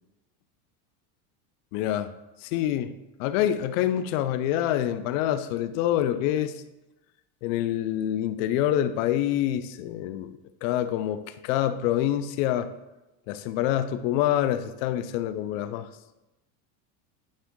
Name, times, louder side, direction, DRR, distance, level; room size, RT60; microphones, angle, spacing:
voice 1, 1.7-2.1 2.5-2.9 3.2-6.6 7.4-12.7 13.3-15.9, left 11 dB, 60° left, 12 dB, 0.5 m, -26 dB
8.8 x 3.6 x 3.7 m, 0.98 s
supercardioid pair, 155°, 44 cm